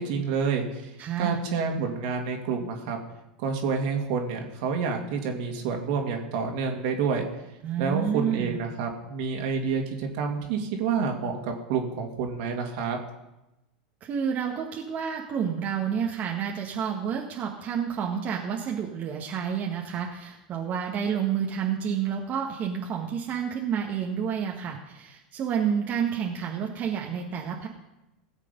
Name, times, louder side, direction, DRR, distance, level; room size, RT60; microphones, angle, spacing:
voice 1, 0.0-3.0 3.4-7.3 7.8-13.0, right 5 dB, 60° right, 2 dB, 2.6 m, -28 dB
voice 2, 1.0-1.4 7.6-8.6 14.0-27.7, right 7 dB, 40° right, 0 dB, 1.7 m, -29 dB
17.5 x 7.4 x 5.4 m, 0.96 s
hypercardioid pair, 95°, 5 cm